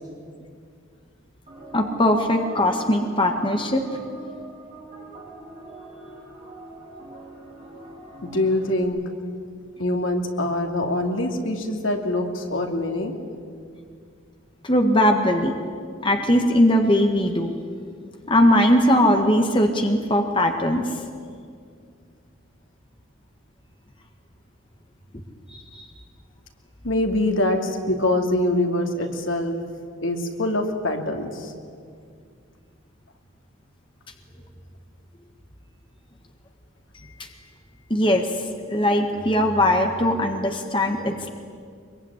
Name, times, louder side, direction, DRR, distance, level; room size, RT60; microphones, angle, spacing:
sound 1, 1.5-8.8, right 2 dB, 30° right, 6.6 m, -43 dB
voice 1, 1.7-3.8 14.6-15.5 16.0-17.5 18.3-20.9 37.9-38.3 38.7-41.3, left 1 dB, 25° left, 4 dB, 1.7 m, -20 dB
voice 2, 8.2-9.0 9.8-13.1 26.8-29.6 30.0-31.5, left 1 dB, 75° left, 4 dB, 2.8 m, -24 dB
24.0 x 22.5 x 9.9 m, 2.2 s
head